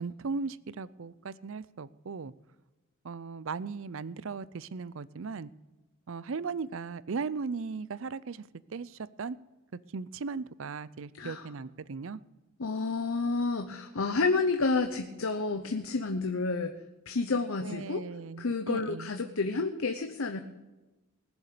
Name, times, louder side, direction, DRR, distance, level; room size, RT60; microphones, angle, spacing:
voice 1, 0.0-2.3 3.0-5.5 6.1-8.4 8.7-9.4 9.9-12.2 17.6-19.1, right 4 dB, 60° right, 19 dB, 0.5 m, -37 dB
voice 2, 12.6-16.7 17.1-18.0 18.4-20.4, left 3 dB, 70° left, 6 dB, 0.9 m, -30 dB
20.0 x 7.1 x 6.7 m, 1.1 s
head